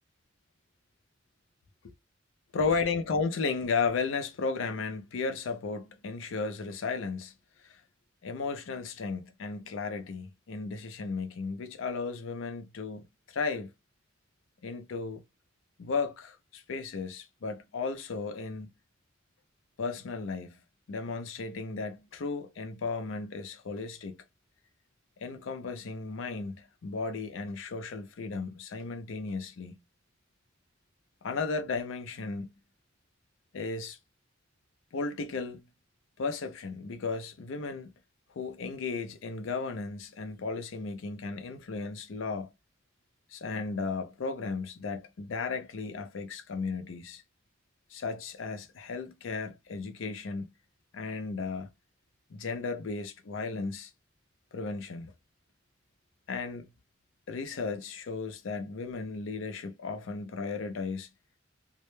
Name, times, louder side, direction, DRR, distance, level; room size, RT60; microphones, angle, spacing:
voice 1, 2.5-7.3 7.6-7.8 8.2-13.7 14.6-15.2 15.8-18.7 19.8-20.6 20.9-24.2 25.2-29.8 31.2-32.5 33.5-34.0 34.9-35.6 36.2-37.9 38.4-42.5 43.3-47.2 47.9-50.5 50.9-51.7 52.3-53.9 54.5-55.1 56.3-56.7 57.3-61.1, left 4 dB, 70° left, 0.5 m, -35 dB
2.1 x 2.1 x 3.0 m
head